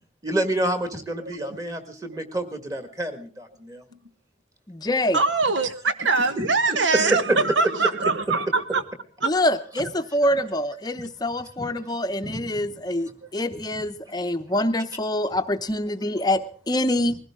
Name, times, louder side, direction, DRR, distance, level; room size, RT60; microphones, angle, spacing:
voice 1, 0.2-3.8 6.4-6.5 7.1-7.2 11.6-11.7 12.2-12.7, right 1 dB, 20° right, 8 dB, 1.8 m, -29 dB
voice 2, 1.2-1.6 5.1-8.8 9.2-9.3, right 3 dB, 80° right, 11 dB, 1.2 m, -23 dB
voice 3, 4.7-5.2 9.2-17.2, left 1 dB, 20° left, 9 dB, 0.7 m, -25 dB
21.0 x 16.0 x 3.7 m, 0.41 s
head